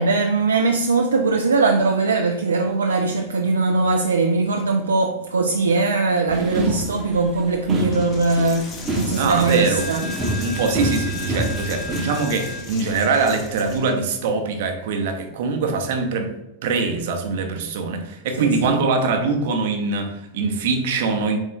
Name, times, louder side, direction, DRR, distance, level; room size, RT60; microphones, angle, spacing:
voice 1, 0.0-10.0 10.3-10.4 12.0-12.1 18.4-18.8, right 3 dB, 70° right, 0.3 m, -21 dB
sound 1, 6.3-12.1, right 1 dB, 20° right, 0.8 m, -28 dB
Coin (dropping), 7.9-13.9, left 3 dB, 30° left, 0.8 m, -34 dB
voice 2, 9.2-9.9 10.4-16.3 16.6-21.4, right 4 dB, 55° right, 0.7 m, -23 dB
4.1 x 3.5 x 3.6 m
figure-of-eight pair, 90°, 0 cm